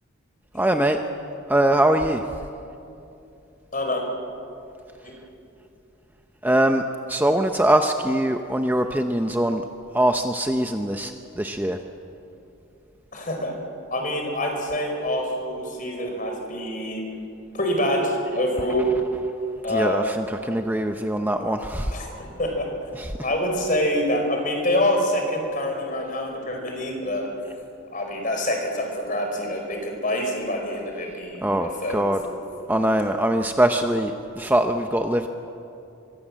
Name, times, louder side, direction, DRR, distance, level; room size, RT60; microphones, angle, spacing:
voice 1, 0.5-1.0 1.5-2.2 6.4-6.8 7.1-9.6 9.9-11.8 18.6-18.7 18.9-19.2 19.7-22.0 22.9-23.3 31.4-32.2 32.7-35.3, right 1 dB, 10° right, 5 dB, 0.7 m, -22 dB
voice 2, 3.7-4.0 5.0-5.2 13.1-13.5 13.9-17.1 17.5-18.9 19.6-20.2 21.9-22.7 23.2-27.3 27.9-32.4, left 1 dB, 40° left, 2 dB, 4.9 m, -26 dB
25.5 x 23.5 x 7.6 m, 2.7 s
head